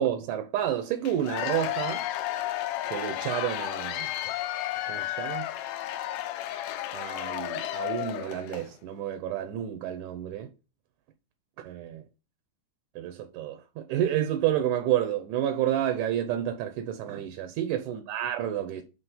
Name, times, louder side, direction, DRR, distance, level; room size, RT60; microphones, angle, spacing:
voice 1, 0.0-2.0 2.9-4.1 4.9-5.5 6.9-10.5 11.6-12.0 13.0-18.8, right 11 dB, 80° right, 2.2 m, -30 dB
Cheering / Applause / Crowd, 1.0-8.7, left 13 dB, 85° left, 2.1 m, -32 dB
6.1 x 3.1 x 5.5 m
omnidirectional pair, 3.6 m